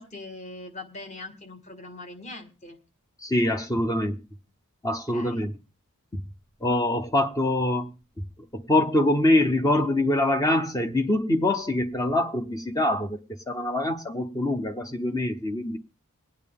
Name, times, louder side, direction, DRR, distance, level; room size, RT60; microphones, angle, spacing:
voice 1, 0.0-2.8 5.1-5.5, left 2 dB, 30° left, 1.7 m, -41 dB
voice 2, 3.2-4.2 4.8-5.5 6.6-7.9 8.5-13.2 13.5-15.8, left 1 dB, 15° left, 0.8 m, -24 dB
21.0 x 8.9 x 3.6 m
head